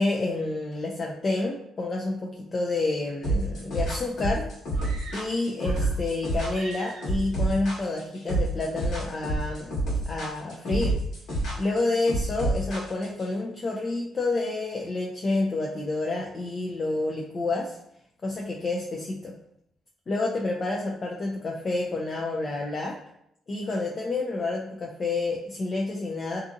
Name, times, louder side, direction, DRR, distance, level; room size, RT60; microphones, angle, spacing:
voice 1, 0.0-4.5 5.1-9.7 10.1-11.0 11.6-17.8 18.2-19.3 20.1-23.0 23.5-26.4, left 2 dB, 40° left, -1 dB, 0.4 m, -29 dB
sound 1, 3.2-13.3, right 2 dB, 70° left, 1.3 m, -28 dB
sound 2, 4.7-6.1 6.5-7.3, right 3 dB, 75° right, 0.6 m, -44 dB
2.6 x 2.6 x 2.5 m, 0.76 s
cardioid pair, 90°, 0 cm